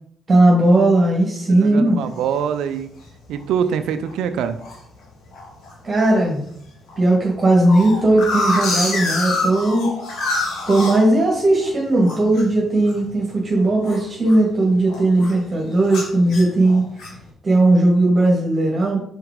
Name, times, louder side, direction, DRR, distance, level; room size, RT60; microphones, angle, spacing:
voice 1, 0.3-2.0 5.8-6.4 7.0-10.0 10.7-16.8 17.4-19.0, right 2 dB, 35° right, -2 dB, 1.6 m, -17 dB
voice 2, 1.5-3.0 3.3-4.6, right 8 dB, 85° right, 9 dB, 0.4 m, -24 dB
sound 1, 2.1-2.5 3.0-3.1 3.4-3.7 4.1-4.8 5.3-5.7 6.1-6.2 6.5-6.6 6.9-11.7 12.0-14.6 14.9-15.4 15.9-17.2, left 2 dB, 75° left, 1.8 m, -26 dB
4.8 x 4.2 x 5.1 m, 0.70 s
cardioid pair, 90°, 0 cm